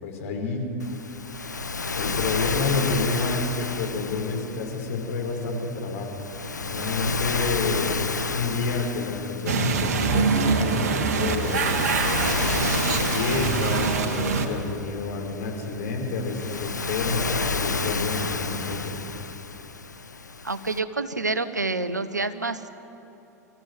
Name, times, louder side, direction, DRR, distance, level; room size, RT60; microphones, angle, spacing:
voice 1, 0.0-0.6 2.0-6.1 6.5-11.7 12.0-12.3 13.1-19.0, left 4 dB, 55° left, 2 dB, 5.0 m, -29 dB
Waves surf, 0.8-20.8, left 4 dB, 85° left, 0.7 m, -31 dB
sound 1, 9.5-14.5, right 5 dB, 65° right, 2.0 m, -24 dB
voice 2, 20.4-22.7, right 3 dB, 85° right, 12 dB, 1.1 m, -28 dB
25.5 x 14.5 x 9.6 m, 3.0 s
figure-of-eight pair, 90°, 9 cm